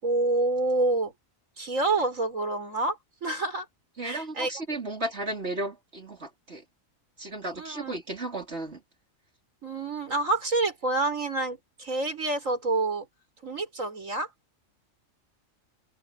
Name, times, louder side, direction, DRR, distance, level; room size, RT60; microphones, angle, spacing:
voice 1, 0.0-1.1 1.6-3.7 4.0-4.5 7.6-8.0 9.6-13.1 13.4-14.3, right 2 dB, 70° right, 5.6 m, -28 dB
voice 2, 4.0-6.6 7.2-8.8, right 2 dB, 50° right, 4.8 m, -34 dB
omnidirectional pair, 1.4 m